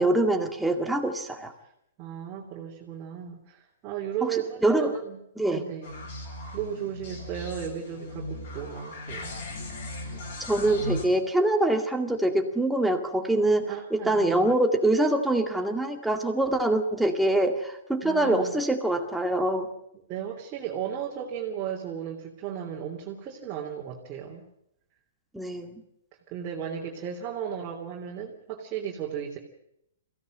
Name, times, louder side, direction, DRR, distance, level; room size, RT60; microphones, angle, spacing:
voice 1, 0.0-1.5 4.2-5.0 5.4-5.6 10.4-19.7 25.3-25.8, right 1 dB, ahead, 4 dB, 2.1 m, -24 dB
voice 2, 2.0-6.1 6.5-9.3 13.7-14.5 18.0-18.5 20.1-24.4 26.3-29.4, right 9 dB, 30° right, -2 dB, 3.2 m, -35 dB
sound 1, 5.8-11.0, left 1 dB, 55° left, 7.9 m, -37 dB
22.5 x 16.0 x 7.8 m, 0.78 s
hypercardioid pair, 145°, 0 cm